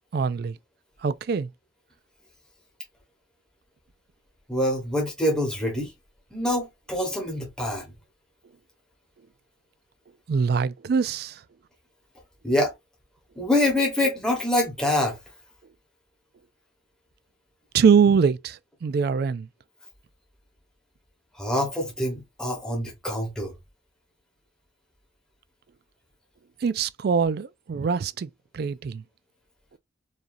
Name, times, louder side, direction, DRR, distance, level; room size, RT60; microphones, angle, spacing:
voice 1, 0.1-0.6 1.0-1.5 10.3-11.4 17.7-19.5 26.6-29.0, right 6 dB, 55° right, 0.3 m, -23 dB
voice 2, 4.5-5.9 6.3-7.8 12.4-12.7 13.4-15.2 21.4-23.5, left 1 dB, 5° left, 1.1 m, -25 dB
4.8 x 2.7 x 2.6 m
head